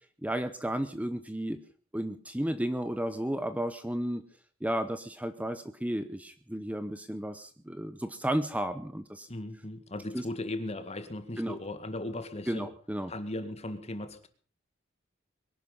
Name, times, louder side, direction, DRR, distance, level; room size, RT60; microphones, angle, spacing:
voice 1, 0.2-1.6 1.9-4.2 4.6-9.3 10.1-10.2 11.4-11.6 12.5-13.1, right 1 dB, 5° right, 10 dB, 0.9 m, -33 dB
voice 2, 9.3-12.7 13.1-14.3, left 1 dB, 30° left, 10 dB, 1.9 m, -37 dB
22.5 x 11.5 x 5.5 m, 0.42 s
head